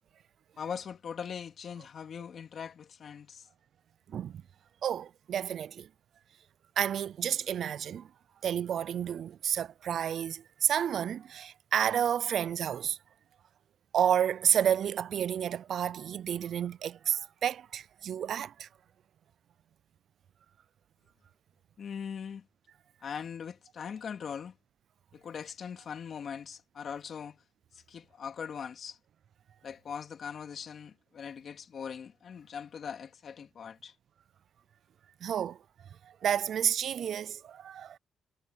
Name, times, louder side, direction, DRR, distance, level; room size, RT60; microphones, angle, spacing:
voice 1, 0.6-3.5 21.8-22.5 23.0-24.6 25.1-27.4 27.7-29.0 29.6-33.9, left 7 dB, 55° left, 2.7 m, -41 dB
voice 2, 4.1-4.4 4.8-5.9 6.8-8.1 8.4-13.0 13.9-18.7 35.2-35.6 36.0-38.0, right 9 dB, 65° right, 0.4 m, -30 dB
cardioid pair, 90°, 0 cm